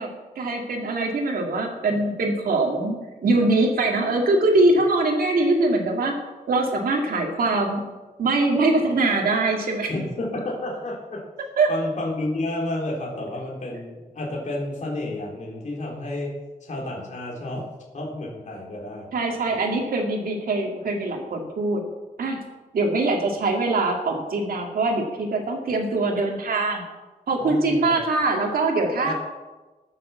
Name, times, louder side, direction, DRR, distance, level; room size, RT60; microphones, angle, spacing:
voice 1, 0.0-3.0 3.2-6.2 6.5-7.9 8.2-9.9 11.6-11.7 19.1-21.9 22.2-22.4 22.7-26.8 27.3-29.1, right 2 dB, 90° right, 1 dB, 2.4 m, -22 dB
voice 2, 9.9-11.3 11.7-17.7 17.9-19.6 27.4-28.0 29.0-29.1, left 2 dB, 55° left, -3 dB, 3.6 m, -31 dB
21.0 x 7.0 x 7.2 m, 1.2 s
wide cardioid pair, 170°, 15 cm